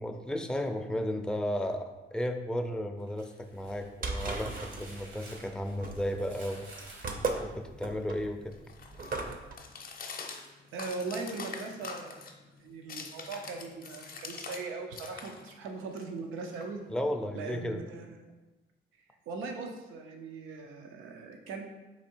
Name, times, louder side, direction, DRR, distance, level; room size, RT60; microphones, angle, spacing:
voice 1, 0.0-6.7 7.4-8.6 16.9-17.8, equal, 5° left, 4 dB, 0.4 m, -34 dB
sound 1, 3.0-8.1, right 1 dB, 75° right, 1.3 m, -51 dB
sound 2, 3.6-9.5, right 3 dB, 45° right, 0.6 m, -37 dB
sound 3, 7.3-14.7 14.9-17.1, left 5 dB, 50° left, 0.6 m, -45 dB
voice 2, 10.7-12.3 12.6-16.8 17.3-18.2 19.3-21.6, right 4 dB, 90° right, 3 dB, 0.6 m, -39 dB
4.1 x 2.7 x 4.4 m, 1.1 s
cardioid pair, 90°, 20 cm